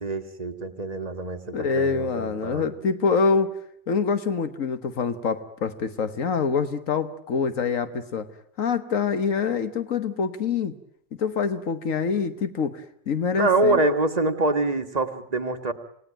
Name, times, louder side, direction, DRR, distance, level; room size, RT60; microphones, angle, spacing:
voice 1, 0.0-2.7 13.3-15.7, right 2 dB, 30° right, 5 dB, 1.7 m, -25 dB
voice 2, 1.5-3.5 3.9-8.3 8.6-10.7 11.2-13.8, left 5 dB, 80° left, 10 dB, 1.6 m, -25 dB
28.0 x 18.0 x 8.9 m, 0.69 s
omnidirectional pair, 1.4 m